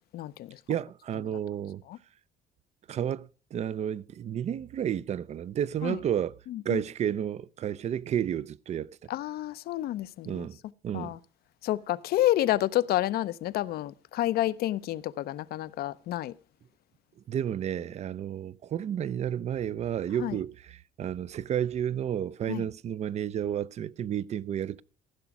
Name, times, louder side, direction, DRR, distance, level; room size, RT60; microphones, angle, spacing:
voice 1, 0.1-0.6 1.9-2.0 5.8-6.0 6.5-6.8 9.1-10.5 10.9-11.2 11.6-16.3 20.2-20.4 22.5-22.6, left 14 dB, 65° left, 0.5 m, -29 dB
voice 2, 0.7-1.8 2.9-6.4 6.7-8.9 10.3-10.6 10.8-11.2 17.3-24.8, right 9 dB, 40° right, 0.4 m, -31 dB
15.0 x 6.0 x 5.9 m
cardioid pair, 110°, 17 cm